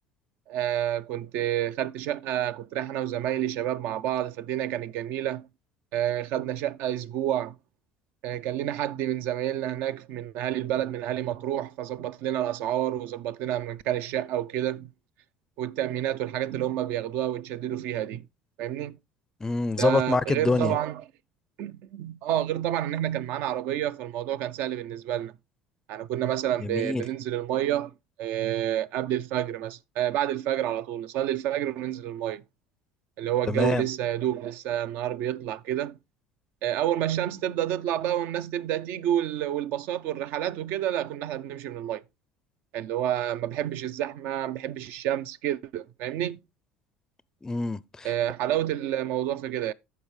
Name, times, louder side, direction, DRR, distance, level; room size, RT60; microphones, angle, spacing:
voice 1, 0.5-5.5 5.9-7.6 8.2-14.9 15.6-18.2 18.6-19.0 19.8-21.0 21.6-25.3 25.9-27.9 28.2-32.4 33.2-36.0 36.6-42.0 42.7-46.4 48.0-49.7, right 12 dB, 65° right, 0.5 m, -29 dB
voice 2, 19.4-20.7 26.6-27.0 33.5-33.8 47.4-48.1, left 3 dB, 15° left, 0.4 m, -26 dB
13.5 x 4.6 x 3.1 m
hypercardioid pair, 80°, 4 cm